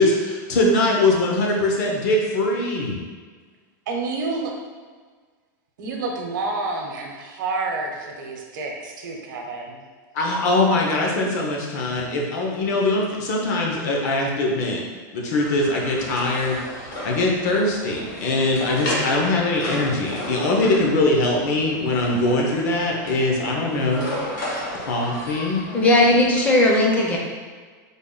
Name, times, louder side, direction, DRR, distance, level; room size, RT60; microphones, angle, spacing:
voice 1, 0.0-3.0 10.1-14.8 15.1-24.1 24.7-25.6, left 2 dB, 60° left, -1 dB, 0.7 m, -22 dB
voice 2, 3.9-4.5 5.8-9.8, right 3 dB, 75° right, 1 dB, 0.7 m, -29 dB
sound 1, 15.4-26.5, left 1 dB, 75° left, 1.3 m, -34 dB
voice 3, 25.7-27.2, left 1 dB, 15° left, -2 dB, 0.4 m, -17 dB
3.5 x 2.2 x 3.8 m, 1.5 s
supercardioid pair, 165°, 11 cm